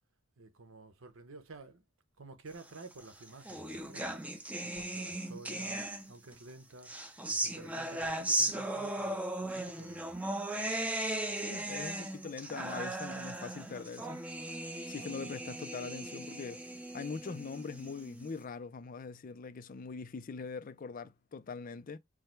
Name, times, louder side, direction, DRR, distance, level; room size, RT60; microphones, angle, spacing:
voice 1, 0.4-1.8 2.2-4.2 4.6-6.9 7.3-10.3, right 3 dB, 85° right, 0.9 m, -52 dB
sound 1, 2.9-6.3 6.8-18.3, right 1 dB, 5° right, 0.6 m, -37 dB
voice 2, 11.4-14.2 14.9-16.6 16.9-22.0, left 4 dB, 45° left, 0.4 m, -42 dB
4.8 x 2.1 x 4.4 m
head